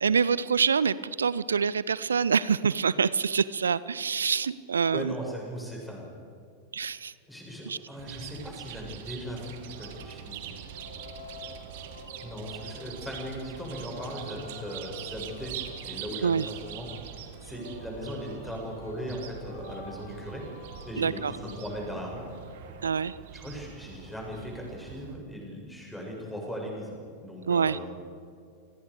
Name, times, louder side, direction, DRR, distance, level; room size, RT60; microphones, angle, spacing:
voice 1, 0.0-5.2 6.7-7.1 7.7-7.8 16.2-16.5 21.0-21.3 22.8-23.1 27.5-27.8, right 6 dB, 70° right, 19 dB, 0.6 m, -26 dB
voice 2, 4.9-6.1 7.3-10.6 12.2-15.5 15.8-16.9 17.4-20.4 20.8-22.3 23.3-28.0, equal, 5° left, -2 dB, 8.0 m, -38 dB
Chirp tweet, 8.0-25.1, right 9 dB, 50° right, 1.9 m, -44 dB
Singing, 9.3-23.0, left 2 dB, 75° left, 6.8 m, -49 dB
29.5 x 21.0 x 5.1 m, 2.3 s
figure-of-eight pair, 90°, 0 cm